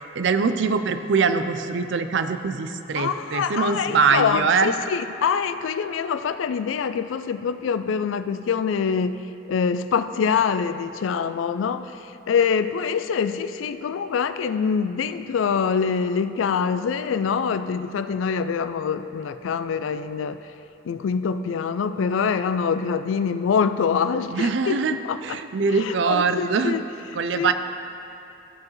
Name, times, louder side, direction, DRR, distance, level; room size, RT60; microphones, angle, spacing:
voice 1, 0.2-4.7 24.3-24.9 25.2-26.8 27.1-27.5, right 5 dB, 65° right, 9 dB, 0.4 m, -23 dB
voice 2, 3.0-9.2 9.5-11.9 12.3-20.4 20.8-25.4 25.8-26.8 27.1-27.5, left 6 dB, 85° left, 11 dB, 0.3 m, -25 dB
14.0 x 4.8 x 3.1 m, 2.9 s
head